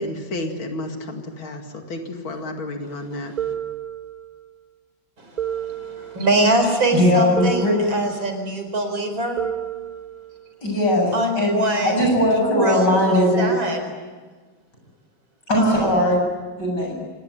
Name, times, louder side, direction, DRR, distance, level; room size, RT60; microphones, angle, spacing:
voice 1, 0.0-3.3, left 1 dB, 85° left, 4 dB, 3.0 m, -31 dB
voice 2, 3.1-3.5 5.2-9.4 11.1-12.0 12.4-13.8 15.6-16.1, right 1 dB, 75° right, 5 dB, 5.2 m, -24 dB
sound 1, 3.4-4.5 5.4-6.6 7.4-8.5 9.4-10.6, right 9 dB, 25° right, 1.4 m, -31 dB
voice 3, 6.9-7.8 10.6-11.1 11.4-13.5 15.5-16.3 16.6-17.0, left 1 dB, 55° left, 0 dB, 8.7 m, -19 dB
25.0 x 19.0 x 9.8 m, 1.4 s
omnidirectional pair, 2.2 m